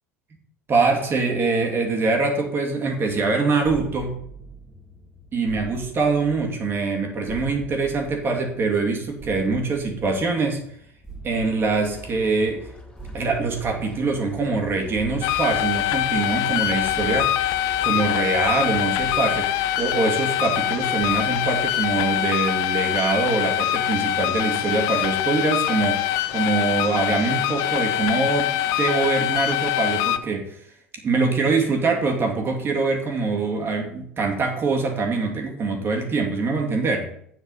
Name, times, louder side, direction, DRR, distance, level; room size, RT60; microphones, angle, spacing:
voice 1, 0.7-4.2 5.3-10.6 11.2-12.7 13.1-17.3 17.8-30.5 31.0-37.1, right 3 dB, 35° right, 2 dB, 2.4 m, -24 dB
sound 1, 3.6-22.5, right 3 dB, 10° right, 2.2 m, -44 dB
sound 2, 11.9-18.8, left 1 dB, 15° left, 3.3 m, -43 dB
sound 3, 15.2-30.2, left 13 dB, 55° left, 0.7 m, -24 dB
8.7 x 8.1 x 4.2 m, 0.69 s
figure-of-eight pair, 75°, 7 cm